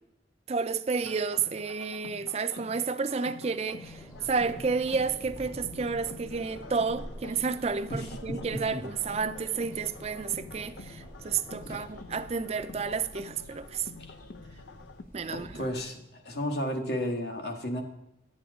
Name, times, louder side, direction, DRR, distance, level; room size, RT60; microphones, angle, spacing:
voice 1, 0.5-13.9 15.1-15.7, right 5 dB, 35° right, 0.4 m, -31 dB
sound 1, 1.0-15.0, left 4 dB, 85° left, 0.6 m, -48 dB
sound 2, 3.7-11.9, equal, 10° left, 0.8 m, -51 dB
sound 3, 3.8-15.8, equal, 45° left, 1.6 m, -49 dB
voice 2, 7.9-8.8 11.6-11.8 14.0-14.1 15.3-17.8, equal, 65° left, 1.3 m, -34 dB
11.0 x 8.5 x 3.7 m
head